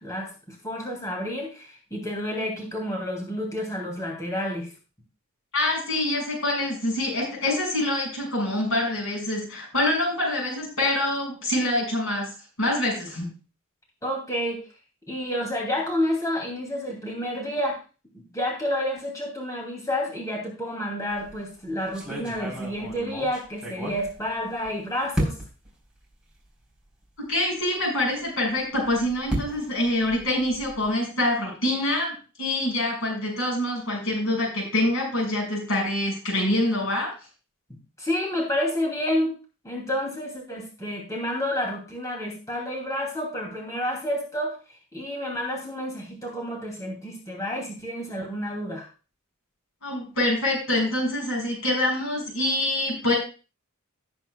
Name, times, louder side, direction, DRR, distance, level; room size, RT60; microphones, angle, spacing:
voice 1, 0.0-4.7 14.0-14.6 15.1-17.8 18.3-25.3 38.0-39.3 39.6-44.6 44.9-48.9, left 1 dB, 15° left, -1 dB, 2.7 m, -29 dB
voice 2, 5.5-12.3 12.6-13.3 27.2-37.1 49.8-53.1, left 1 dB, 70° left, -1 dB, 6.0 m, -25 dB
sound 1, 21.1-21.4 21.9-24.7 25.1-25.7 26.4-26.5 26.9-27.0 28.6-30.9, equal, 5° right, 4.0 m, -32 dB
18.0 x 7.9 x 2.3 m, 0.34 s
head